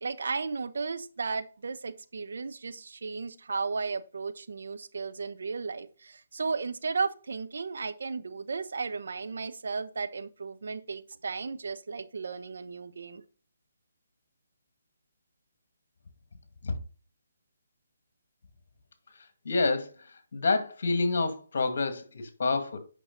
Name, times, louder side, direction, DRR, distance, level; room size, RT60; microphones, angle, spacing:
voice 1, 0.0-13.2, right 4 dB, 70° right, 1.0 m, -34 dB
voice 2, 19.4-22.8, left 3 dB, 60° left, 2.1 m, -28 dB
8.5 x 5.9 x 4.0 m
hypercardioid pair, 150°, 0 cm